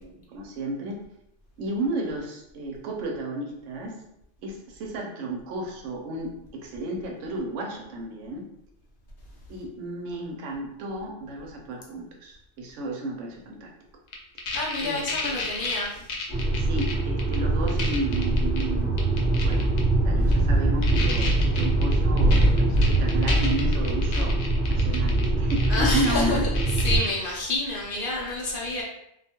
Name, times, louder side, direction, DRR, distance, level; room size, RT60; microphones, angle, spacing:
voice 1, 0.0-1.0 1.6-4.0 4.4-8.5 9.5-13.7 14.8-15.6 16.4-19.0 19.4-19.7 20.0-24.4 24.7-26.4, right 1 dB, 85° right, 1 dB, 0.9 m, -33 dB
sound 1, 14.1-16.9 17.2-17.4 17.7-18.6 19.0-19.8 20.3-20.4 20.8-26.2 26.5-27.1, left 3 dB, 85° left, 0.9 m, -32 dB
voice 2, 14.5-16.1 25.7-26.5 26.8-28.8, left 2 dB, 55° left, -3 dB, 0.7 m, -28 dB
sound 2, 16.3-27.0, right 2 dB, 20° right, 0.8 m, -23 dB
2.4 x 2.2 x 2.8 m, 0.77 s
omnidirectional pair, 1.2 m